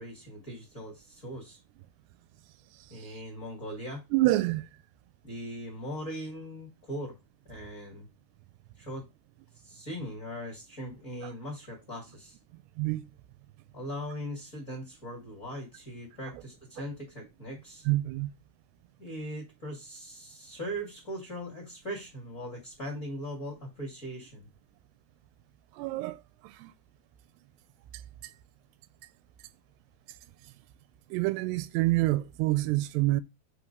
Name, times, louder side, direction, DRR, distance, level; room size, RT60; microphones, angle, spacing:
voice 1, 0.0-1.6 2.9-4.0 5.2-7.1 7.5-8.1 8.8-9.0 9.6-12.4 13.7-17.8 19.0-24.5, equal, 30° left, 1.6 m, -40 dB
voice 2, 4.1-4.7 12.8-13.0 17.9-18.3 25.8-26.2 26.6-26.7 31.1-33.2, right 18 dB, 90° right, 2.6 m, -26 dB
6.0 x 3.7 x 5.1 m
omnidirectional pair, 4.7 m